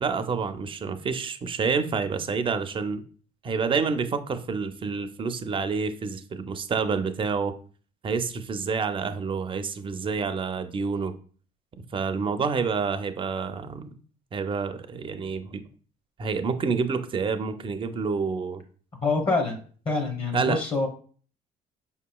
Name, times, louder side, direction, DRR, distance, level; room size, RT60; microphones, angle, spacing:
voice 1, 0.0-3.0 3.4-7.5 8.0-11.1 11.9-13.9 14.3-15.6 16.2-18.6 20.3-20.6, right 5 dB, 30° right, 9 dB, 0.4 m, -28 dB
voice 2, 19.0-19.6 19.9-20.9, left 3 dB, 30° left, 3 dB, 0.8 m, -25 dB
5.0 x 2.9 x 2.3 m, 0.43 s
cardioid pair, 110°, 17 cm